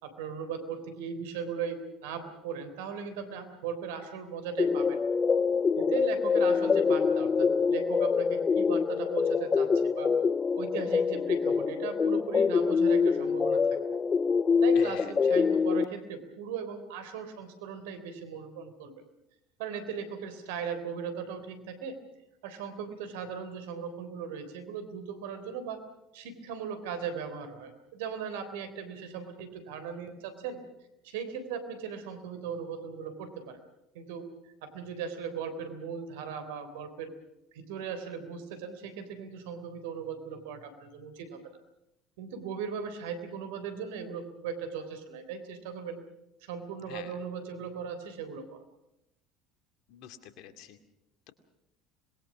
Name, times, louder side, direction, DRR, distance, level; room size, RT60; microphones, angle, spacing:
voice 1, 0.0-5.0 5.8-10.1 10.6-13.6 14.6-18.9 19.6-22.0 22.4-25.8 26.1-30.6 31.0-33.6 33.9-34.3 34.6-37.2 37.5-41.6 42.2-46.0 46.4-48.6, right 6 dB, 75° right, 10 dB, 3.5 m, -38 dB
sound 1, 4.6-15.8, left 5 dB, 30° left, 0.9 m, -25 dB
voice 2, 14.7-15.1 46.9-47.2 49.9-50.8, left 10 dB, 65° left, 9 dB, 2.3 m, -47 dB
26.0 x 21.5 x 6.2 m, 0.87 s
hypercardioid pair, 70°, 0 cm